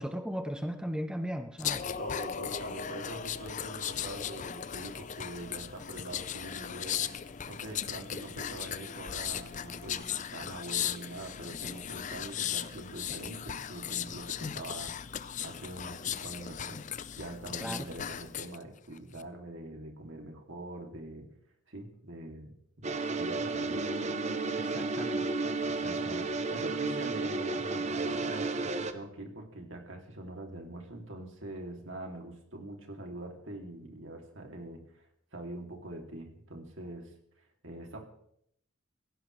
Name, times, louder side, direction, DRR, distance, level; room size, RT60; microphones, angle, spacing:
voice 1, 0.0-1.8 17.6-17.9 24.6-25.3 25.7-26.2, equal, 5° right, 7 dB, 0.7 m, -37 dB
sound 1, 1.6-18.6 19.0-19.2, left 8 dB, 40° left, 0.5 m, -37 dB
voice 2, 2.0-7.1 7.5-16.8 17.2-21.3 21.7-23.8 25.8-26.2 26.5-35.1 35.3-37.1 37.6-38.0, right 1 dB, 70° right, 2 dB, 2.9 m, -43 dB
sound 2, 22.8-28.9, right 3 dB, 35° right, 0.9 m, -32 dB
Bass guitar, 23.7-27.8, right 2 dB, 85° right, 2.1 m, -44 dB
17.0 x 15.5 x 3.3 m, 0.72 s
head